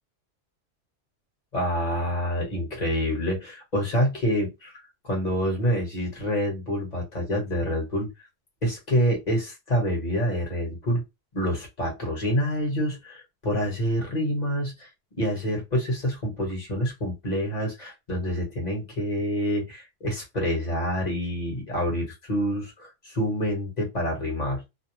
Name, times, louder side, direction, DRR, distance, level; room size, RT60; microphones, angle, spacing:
voice 1, 1.5-8.1 8.6-11.0 11.3-14.9 15.2-24.6, equal, 40° left, 1.1 m, -27 dB
2.6 x 2.0 x 2.9 m
omnidirectional pair, 1.2 m